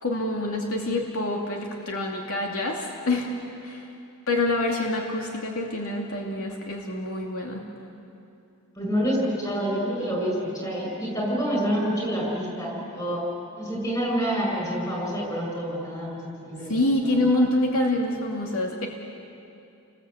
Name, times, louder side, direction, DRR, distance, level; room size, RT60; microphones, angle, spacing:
voice 1, 0.0-3.3 3.6-3.9 4.3-7.6 16.7-18.9, left 2 dB, 70° left, 0 dB, 2.5 m, -26 dB
voice 2, 8.8-13.2 13.6-16.7 17.0-17.2, equal, 20° left, -1 dB, 7.1 m, -27 dB
30.0 x 21.0 x 8.3 m, 2.7 s
head